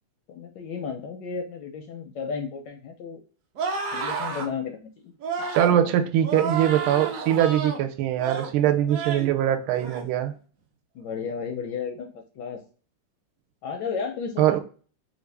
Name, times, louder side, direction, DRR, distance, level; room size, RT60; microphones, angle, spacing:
voice 1, 0.3-3.2 3.9-5.1 10.9-12.6 13.6-14.6, left 6 dB, 75° left, 1.0 m, -33 dB
sound 1, 3.6-4.5 5.2-5.7 6.2-7.8 8.2-8.5 8.9-9.3 9.7-10.0, right 5 dB, 70° right, 0.8 m, -30 dB
voice 2, 5.5-10.3 14.4-14.6, right 11 dB, 85° right, 1.4 m, -22 dB
3.4 x 2.5 x 3.2 m
omnidirectional pair, 2.3 m